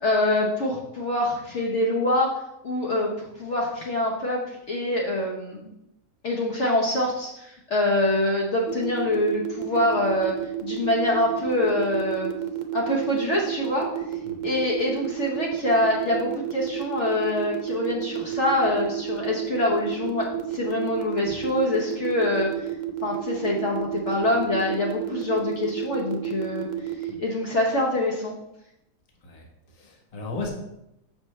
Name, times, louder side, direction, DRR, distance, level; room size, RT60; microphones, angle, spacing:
voice 1, 0.0-2.3 2.6-5.7 6.2-10.3 10.6-12.3 12.7-13.9 14.4-22.5 23.0-26.7 27.0-28.3, left 1 dB, 50° left, -3 dB, 1.1 m, -25 dB
sound 1, 8.7-27.1, right 13 dB, 60° right, 0.9 m, -30 dB
voice 2, 29.7-30.5, left 3 dB, 30° left, -1 dB, 1.0 m, -35 dB
7.0 x 5.5 x 3.1 m, 0.85 s
omnidirectional pair, 1.7 m